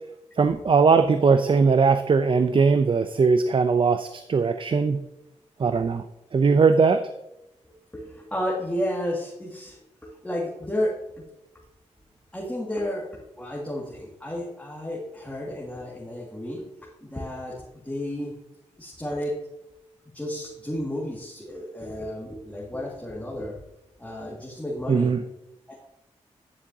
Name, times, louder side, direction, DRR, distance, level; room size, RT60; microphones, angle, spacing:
voice 1, 0.4-5.0 5.6-6.0 6.3-7.0 24.9-25.2, right 5 dB, 45° right, 9 dB, 0.5 m, -20 dB
voice 2, 7.6-11.3 12.3-16.6 17.0-18.3 18.8-19.4 20.1-23.6 24.0-25.1 25.7-25.8, left 1 dB, 10° left, -4 dB, 2.0 m, -32 dB
9.9 x 7.1 x 2.7 m, 0.88 s
cardioid pair, 45°, 12 cm